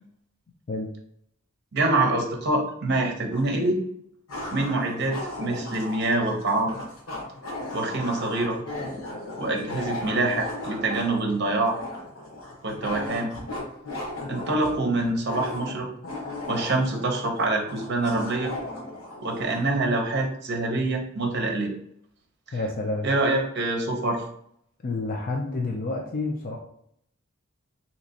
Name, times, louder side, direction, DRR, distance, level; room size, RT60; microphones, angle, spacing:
voice 1, 1.7-3.8 4.5-6.7 7.7-8.6 9.4-11.8 12.6-13.3 14.3-15.9 16.5-18.5 19.2-21.7 23.0-24.2, right 2 dB, 55° right, 2 dB, 0.7 m, -25 dB
sound 1, 3.3-3.4 4.3-19.7, left 1 dB, 85° left, 1.0 m, -36 dB
voice 2, 22.5-23.1 24.8-26.6, left 2 dB, 45° left, 1 dB, 0.4 m, -29 dB
3.3 x 2.9 x 2.7 m, 0.70 s
head